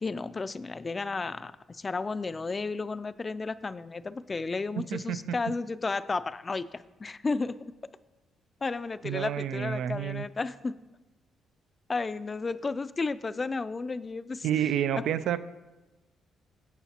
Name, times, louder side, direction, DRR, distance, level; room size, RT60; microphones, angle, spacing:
voice 1, 0.0-7.6 8.6-10.8 11.9-14.5, left 3 dB, 30° left, 14 dB, 0.4 m, -33 dB
voice 2, 9.0-10.3 14.4-15.4, right 10 dB, 75° right, 13 dB, 0.4 m, -29 dB
16.0 x 5.8 x 2.9 m, 1.1 s
cardioid pair, 90°, 0 cm